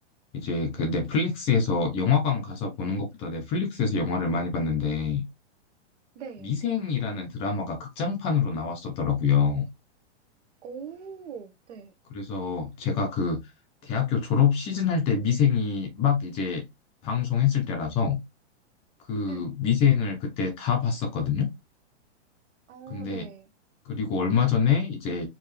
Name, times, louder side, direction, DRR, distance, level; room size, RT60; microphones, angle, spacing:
voice 1, 0.3-5.2 6.4-9.6 12.1-13.4 13.8-16.6 17.0-18.2 19.1-21.5 22.9-23.2 23.9-25.3, left 6 dB, 15° left, 0.5 m, -25 dB
voice 2, 6.1-6.5 10.6-11.9 19.3-19.5 22.7-23.5, right 6 dB, 80° right, 1.1 m, -41 dB
4.7 x 2.9 x 3.1 m
supercardioid pair, 160°, 35 cm